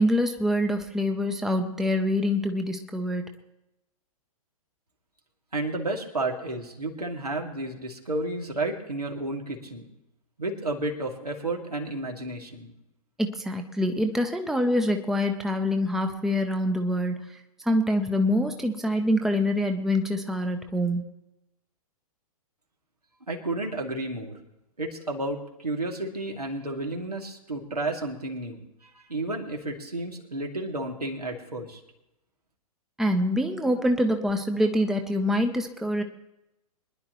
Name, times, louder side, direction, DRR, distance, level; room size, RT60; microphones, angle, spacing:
voice 1, 0.0-3.3 13.2-21.0 33.0-36.0, left 1 dB, ahead, 5 dB, 0.9 m, -25 dB
voice 2, 5.5-9.9 10.4-12.7 23.3-24.4 24.8-31.8, right 2 dB, 85° right, 0 dB, 2.7 m, -32 dB
24.0 x 11.0 x 3.1 m, 0.90 s
figure-of-eight pair, 110°, 19 cm